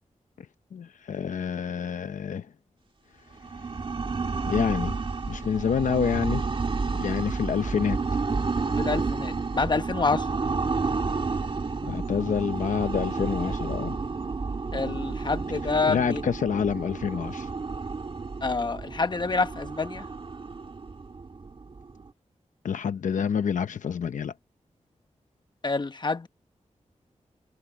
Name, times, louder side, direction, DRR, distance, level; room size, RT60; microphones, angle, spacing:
voice 1, 0.4-2.5 4.5-5.0 5.3-6.4 6.9-8.0 11.8-14.0 15.9-17.5 22.6-24.3, left 7 dB, 85° left, 0.7 m, -28 dB
sound 1, 3.3-22.1, right 4 dB, 45° right, 1.9 m, -31 dB
voice 2, 8.8-10.3 14.7-16.2 18.4-20.1 25.6-26.3, left 3 dB, 35° left, 1.2 m, -27 dB
wide cardioid pair, 110°, 13 cm